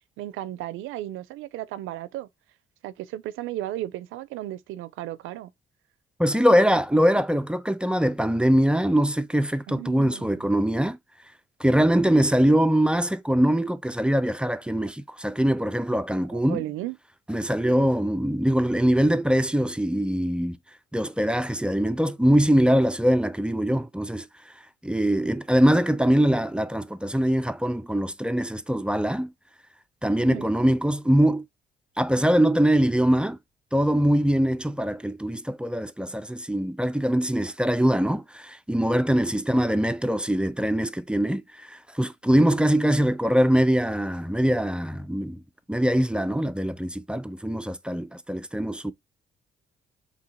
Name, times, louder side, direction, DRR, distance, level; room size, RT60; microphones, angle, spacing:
voice 1, 0.2-2.3 2.8-5.5 7.1-7.2 9.7-10.5 16.3-17.0 30.3-30.5 42.3-42.7, right 14 dB, 90° right, 0.5 m, -35 dB
voice 2, 6.2-11.0 11.6-16.6 17.3-20.6 20.9-24.5 24.8-29.3 30.0-31.4 32.0-33.4 33.7-45.4 45.7-48.9, equal, 5° right, 0.3 m, -23 dB
3.8 x 2.8 x 4.0 m
cardioid pair, 90°, 20 cm